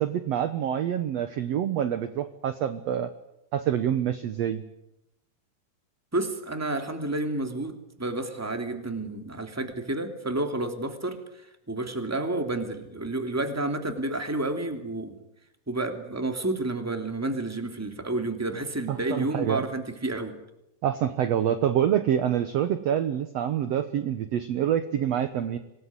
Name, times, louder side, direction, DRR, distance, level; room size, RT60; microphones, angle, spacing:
voice 1, 0.0-3.1 3.5-4.6 18.9-19.7 20.8-25.6, right 10 dB, 65° right, 11 dB, 1.8 m, -26 dB
voice 2, 6.1-11.2 11.7-15.2 15.7-20.4, right 2 dB, 5° right, 6 dB, 2.3 m, -30 dB
26.0 x 19.5 x 9.7 m, 0.86 s
omnidirectional pair, 3.9 m